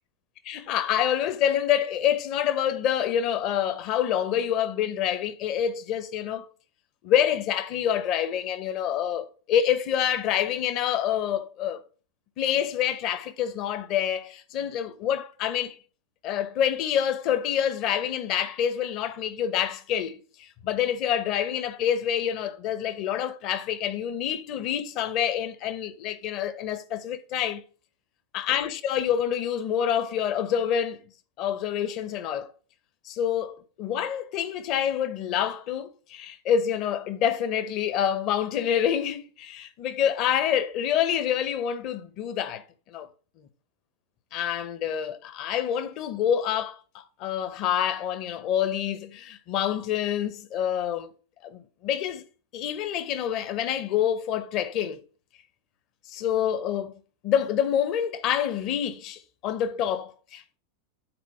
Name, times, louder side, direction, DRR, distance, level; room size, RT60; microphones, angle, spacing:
voice 1, 0.5-6.5 7.0-11.8 12.4-15.8 16.2-27.6 28.3-31.0 31.4-32.5 33.0-43.1 44.3-51.1 51.4-52.2 52.5-55.0 56.1-56.9 57.2-60.6, left 9 dB, 40° left, 0.8 m, -27 dB
8.9 x 4.0 x 4.7 m
figure-of-eight pair, 90°, 0 cm